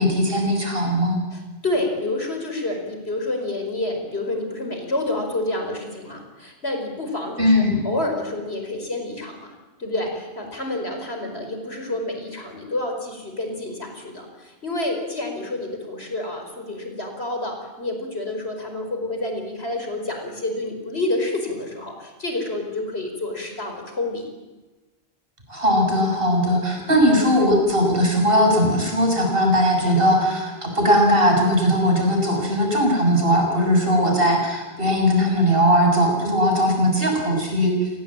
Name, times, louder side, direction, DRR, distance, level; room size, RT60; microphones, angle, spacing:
voice 1, 0.0-1.2 7.4-7.8 25.5-37.9, equal, 60° right, 1 dB, 7.2 m, -19 dB
voice 2, 1.3-9.5 9.8-24.2 26.9-27.1, left 2 dB, 75° left, 4 dB, 5.3 m, -28 dB
30.0 x 19.0 x 8.9 m, 1.2 s
omnidirectional pair, 1.1 m